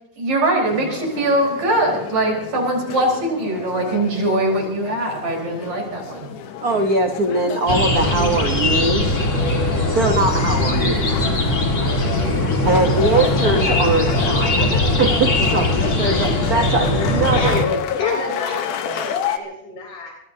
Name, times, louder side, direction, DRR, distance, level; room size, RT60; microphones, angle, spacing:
voice 1, 0.2-6.3, right 1 dB, 65° right, -1 dB, 5.9 m, -21 dB
sound 1, 0.6-19.4, left 7 dB, 90° left, 2.7 m, -29 dB
voice 2, 6.6-9.2 9.7-11.0 12.6-14.7 15.0-17.8, right 3 dB, 90° right, 4 dB, 0.8 m, -21 dB
sound 2, 7.7-17.6, left 1 dB, 30° left, 1.9 m, -20 dB
voice 3, 16.1-16.6 17.3-17.5 18.0-20.1, left 2 dB, 60° left, -2 dB, 5.3 m, -30 dB
24.5 x 20.0 x 2.8 m, 0.82 s
omnidirectional pair, 3.5 m